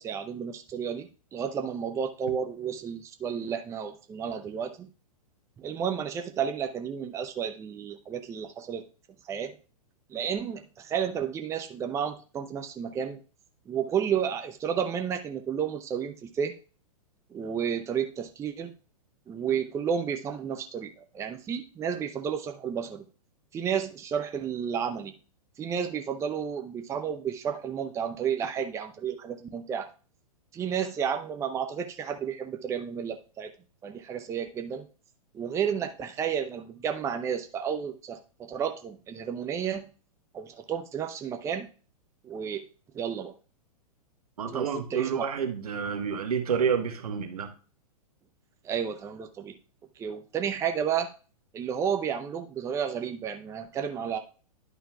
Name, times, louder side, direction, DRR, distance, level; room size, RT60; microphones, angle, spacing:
voice 1, 0.0-4.9 5.6-8.8 9.2-9.5 10.1-13.2 13.7-16.5 17.3-18.7 19.3-23.0 23.5-25.2 25.6-29.9 30.5-33.5 33.8-34.9 35.3-39.9 40.3-41.7 42.2-42.6 42.9-43.3 44.5-45.2 48.6-49.5 50.0-51.1 51.5-54.2, right 8 dB, 15° right, 6 dB, 0.5 m, -32 dB
voice 2, 44.4-47.5, right 6 dB, 70° right, 6 dB, 1.3 m, -29 dB
11.0 x 5.5 x 2.3 m, 0.36 s
figure-of-eight pair, 110°, 20 cm